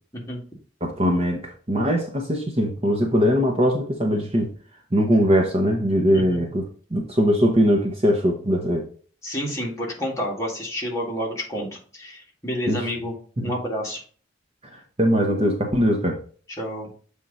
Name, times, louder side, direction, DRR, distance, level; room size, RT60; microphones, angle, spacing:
voice 1, 0.8-4.5 4.9-6.6 6.9-8.9 12.7-12.8 13.4-13.5 15.0-16.2, equal, 30° right, 0.9 m, -21 dB
voice 2, 6.1-6.4 9.2-14.0 16.6-16.9, equal, 15° left, 2.0 m, -29 dB
7.6 x 3.6 x 4.0 m
head